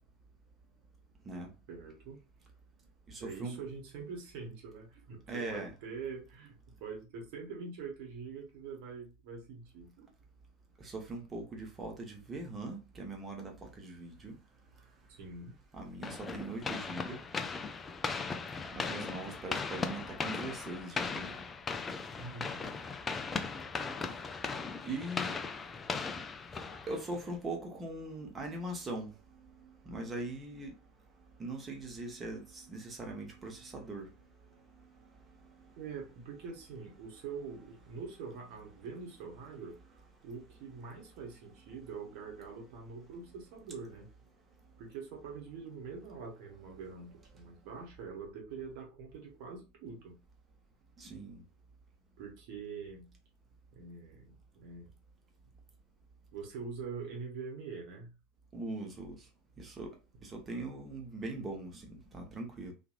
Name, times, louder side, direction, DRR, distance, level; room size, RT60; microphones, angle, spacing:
voice 1, 1.7-2.2 3.2-10.1 15.1-15.6 22.2-22.7 35.8-44.1 44.8-50.2 52.2-53.1 53.7-54.9 56.3-58.1 60.5-60.7, right 5 dB, 55° right, 1.1 m, -44 dB
voice 2, 3.1-3.6 5.3-5.7 10.8-14.4 15.7-17.2 18.7-21.3 24.1-24.3 24.8-25.4 26.9-29.1 29.4-30.8 31.4-34.1 34.5-34.9 35.6-35.7 51.0-51.4 58.5-59.3 59.6-59.9 60.2-62.7, right 2 dB, 25° right, 1.0 m, -41 dB
sound 1, 16.0-27.3, left 4 dB, 20° left, 0.4 m, -38 dB
2.9 x 2.6 x 2.4 m
figure-of-eight pair, 80°, 0 cm